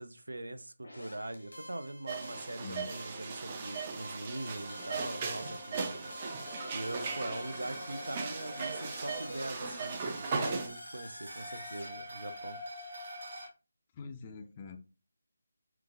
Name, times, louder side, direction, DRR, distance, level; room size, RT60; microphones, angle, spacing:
voice 1, 0.0-6.1 6.7-12.6, right 1 dB, 80° right, 0.5 m, -42 dB
sound 1, 0.8-11.9, left 1 dB, 85° left, 1.0 m, -49 dB
sound 2, 2.1-10.7, right 4 dB, 30° right, 0.5 m, -38 dB
sound 3, 4.5-13.5, equal, 60° right, 1.0 m, -46 dB
voice 2, 13.9-14.8, left 5 dB, 25° left, 0.4 m, -44 dB
4.5 x 2.4 x 2.4 m
figure-of-eight pair, 155°, 0 cm